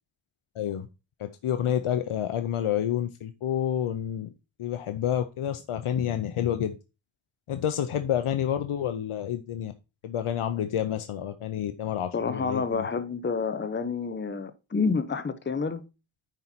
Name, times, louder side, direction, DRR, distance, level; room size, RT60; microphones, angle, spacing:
voice 1, 0.6-0.9 1.2-4.3 4.6-6.8 7.5-9.7 10.0-12.9, left 10 dB, 90° left, 0.7 m, -29 dB
voice 2, 12.1-15.8, left 5 dB, 25° left, 0.7 m, -29 dB
9.9 x 4.5 x 4.1 m
wide cardioid pair, 105°, 49 cm